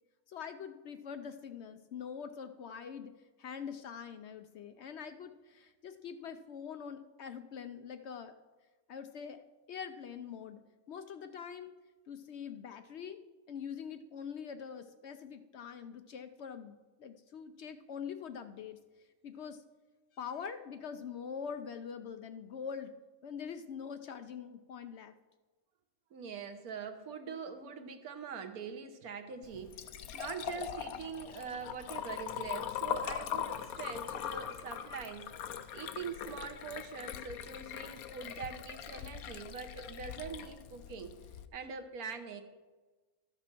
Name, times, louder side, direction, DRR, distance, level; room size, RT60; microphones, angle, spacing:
voice 1, 0.3-3.1 3.4-8.4 8.9-9.4 9.7-10.6 10.9-11.7 12.1-13.2 13.5-18.8 19.2-19.6 20.1-22.9 23.2-25.1, left 7 dB, 65° left, 9 dB, 0.7 m, -44 dB
voice 2, 26.1-35.3 35.7-41.2 41.5-42.4, right 6 dB, 90° right, 8 dB, 1.5 m, -43 dB
Liquid, 29.4-41.5, left 9 dB, 80° left, 1.1 m, -41 dB
13.0 x 6.8 x 6.0 m, 1.3 s
omnidirectional pair, 1.5 m